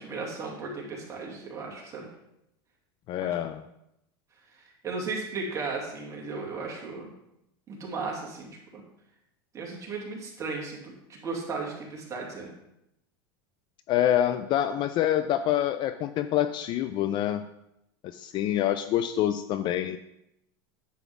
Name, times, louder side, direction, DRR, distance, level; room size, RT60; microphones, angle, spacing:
voice 1, 0.0-2.1 3.2-3.3 4.8-7.1 7.7-8.8 9.5-12.5, right 4 dB, 25° right, -2 dB, 2.6 m, -35 dB
voice 2, 3.1-3.6 13.9-17.5 18.1-20.0, left 11 dB, 35° left, 11 dB, 0.4 m, -26 dB
10.0 x 7.1 x 3.6 m, 0.82 s
supercardioid pair, 140°, 13 cm